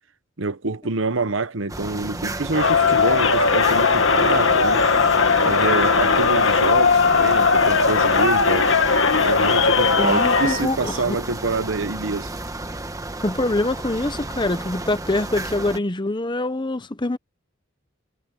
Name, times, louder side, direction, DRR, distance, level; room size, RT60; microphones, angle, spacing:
voice 1, 0.4-4.8 5.4-8.7 9.2-12.3, right 3 dB, 75° right, 1.1 m, -26 dB
sound 1, 1.7-15.8, right 2 dB, 15° right, 1.4 m, -32 dB
Crowd, 2.5-10.6, left 4 dB, 75° left, 1.8 m, -18 dB
voice 2, 10.0-11.2 13.2-17.2, left 2 dB, 25° left, 1.0 m, -24 dB
head